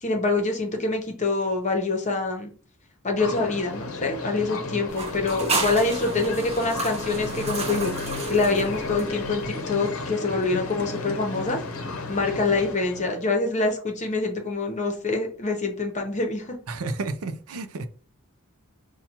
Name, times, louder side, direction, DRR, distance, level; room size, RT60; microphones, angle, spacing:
voice 1, 0.0-2.5 3.0-7.9 8.3-11.6 12.1-16.6, left 3 dB, 35° left, 3 dB, 0.8 m, -25 dB
sound 1, 3.2-13.2, left 3 dB, 70° left, 0.7 m, -33 dB
sound 2, 4.9-9.5, right 3 dB, 30° right, 0.8 m, -32 dB
voice 2, 16.7-17.9, right 3 dB, 70° right, 10 dB, 0.5 m, -31 dB
5.7 x 2.3 x 2.8 m, 0.41 s
head